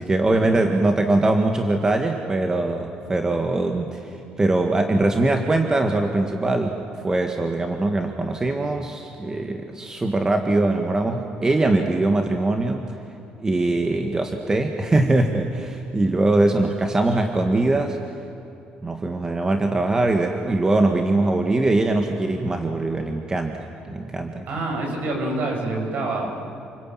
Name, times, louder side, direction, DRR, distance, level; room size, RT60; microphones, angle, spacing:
voice 1, 0.0-12.8 13.4-18.0 18.8-23.6 23.9-24.5, right 2 dB, 20° right, 4 dB, 1.8 m, -22 dB
voice 2, 24.5-26.3, right 2 dB, 60° right, 1 dB, 7.7 m, -26 dB
29.5 x 22.0 x 9.3 m, 2.9 s
cardioid pair, 120°, 3 cm